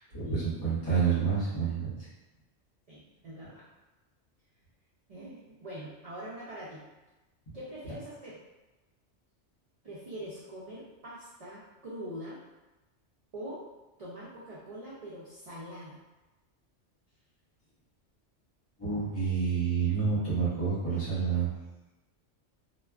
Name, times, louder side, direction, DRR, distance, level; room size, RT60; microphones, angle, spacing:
voice 1, 0.1-1.9 18.8-21.5, right 6 dB, 30° left, -11 dB, 1.4 m, -28 dB
voice 2, 2.9-3.6 5.1-6.8 7.5-8.4 9.8-12.4 13.3-13.6 14.0-16.0, equal, 55° right, -7 dB, 0.4 m, -43 dB
3.3 x 2.3 x 2.3 m, 1.1 s
omnidirectional pair, 1.2 m